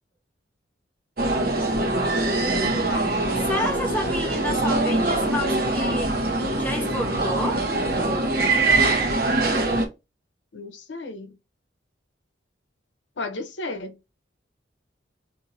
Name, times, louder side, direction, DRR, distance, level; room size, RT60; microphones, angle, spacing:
sound 1, 1.2-9.9, right 2 dB, 55° right, 0.9 m, -23 dB
voice 1, 2.5-4.2 10.5-11.4 13.2-14.0, left 2 dB, 70° left, 0.7 m, -35 dB
voice 2, 3.5-6.2 6.6-7.6, left 1 dB, 10° left, 0.9 m, -29 dB
2.7 x 2.5 x 4.1 m
head